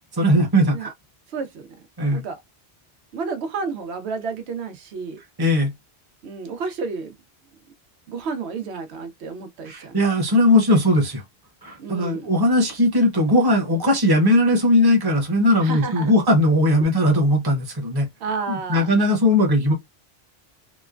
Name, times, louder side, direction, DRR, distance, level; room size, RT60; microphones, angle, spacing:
voice 1, 0.2-0.9 2.0-2.2 5.4-5.7 9.7-11.2 11.6-18.1 18.5-19.7, left 1 dB, 25° right, 0.8 m, -19 dB
voice 2, 1.3-1.7 2.1-2.4 3.1-5.2 6.2-7.1 8.1-10.0 11.8-12.3 15.6-16.2 18.2-19.0, right 4 dB, 85° right, 0.9 m, -31 dB
3.0 x 2.1 x 2.4 m
omnidirectional pair, 1.1 m